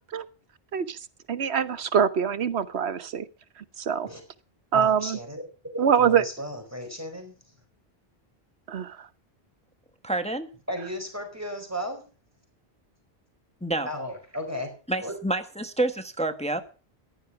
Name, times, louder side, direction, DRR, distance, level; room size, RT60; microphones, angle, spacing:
voice 1, 1.3-3.2 3.8-4.1 4.7-5.2 5.8-6.2 8.7-9.0, right 8 dB, 85° right, 14 dB, 1.3 m, -24 dB
voice 2, 4.7-5.4 6.0-7.3 10.7-12.0 13.8-14.7 15.0-15.1, equal, 15° right, 3 dB, 4.8 m, -34 dB
voice 3, 10.0-10.5 13.6-13.9 14.9-16.6, right 2 dB, 5° left, 8 dB, 1.2 m, -28 dB
15.0 x 11.5 x 5.9 m, 0.37 s
omnidirectional pair, 1.1 m